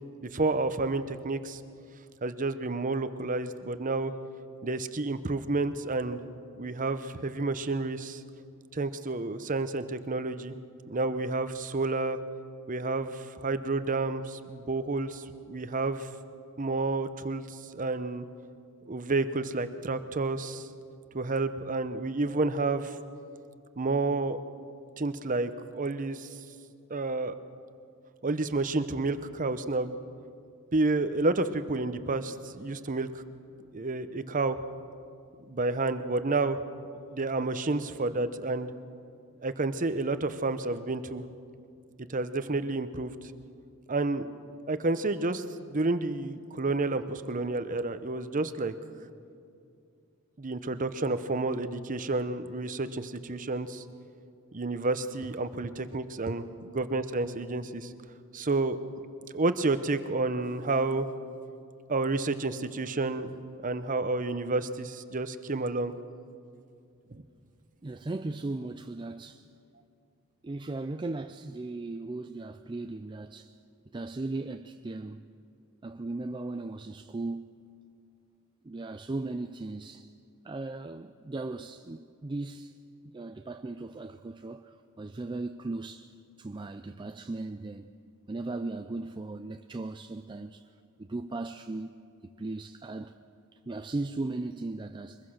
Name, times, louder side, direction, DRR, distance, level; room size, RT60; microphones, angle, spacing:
voice 1, 0.2-1.6 2.2-4.1 4.6-6.2 6.6-8.2 8.7-10.5 10.9-12.2 12.7-16.1 16.6-18.3 18.9-20.7 21.1-22.9 23.8-24.4 25.0-26.3 26.9-27.4 28.2-30.0 30.7-33.2 33.7-34.6 35.5-36.6 37.1-38.7 39.4-41.2 42.1-43.1 43.9-44.3 44.7-48.7 50.4-53.8 54.5-57.9 58.3-58.8 59.3-61.1 61.9-63.3 63.6-65.9 67.1-67.2, right 3 dB, 35° right, 0.8 m, -30 dB
voice 2, 67.8-69.5 70.4-73.5 73.9-75.3 75.8-77.5 78.6-80.1 80.4-82.7 83.1-86.1 86.4-87.9 88.3-90.7 91.0-92.0 92.2-93.2 93.7-95.2, right 2 dB, 20° right, 0.4 m, -37 dB
23.0 x 21.0 x 6.5 m
head